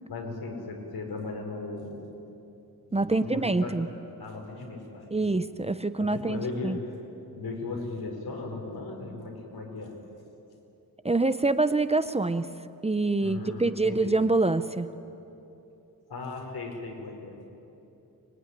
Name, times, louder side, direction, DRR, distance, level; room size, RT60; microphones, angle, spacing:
voice 1, 0.1-2.1 2.9-3.8 4.2-5.4 6.0-6.8 7.3-9.9 13.2-14.1 16.1-17.5, left 3 dB, 85° left, 1 dB, 5.1 m, -37 dB
voice 2, 2.9-3.9 5.1-6.8 11.0-12.5 12.8-14.9, right 2 dB, 15° right, 12 dB, 0.6 m, -25 dB
24.5 x 21.5 x 9.9 m, 2.9 s
wide cardioid pair, 150°, 37 cm